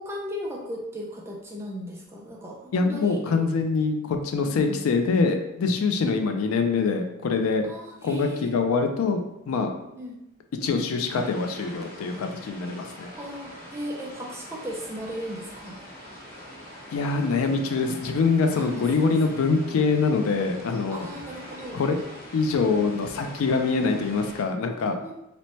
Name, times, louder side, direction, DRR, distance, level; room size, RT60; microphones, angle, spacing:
voice 1, 0.0-3.5 4.4-4.8 7.6-8.5 9.9-10.2 13.2-15.8 18.6-19.1 20.9-21.8 25.0-25.1, equal, 10° right, -2 dB, 0.4 m, -36 dB
voice 2, 2.7-7.7 8.0-9.2 9.5-9.7 10.6-13.1 16.9-21.1 21.7-22.0 22.3-25.0, left 4 dB, 80° left, 6 dB, 0.3 m, -24 dB
sound 1, 11.1-24.4, equal, 45° left, 0.8 m, -43 dB
2.7 x 2.1 x 2.9 m, 0.88 s
head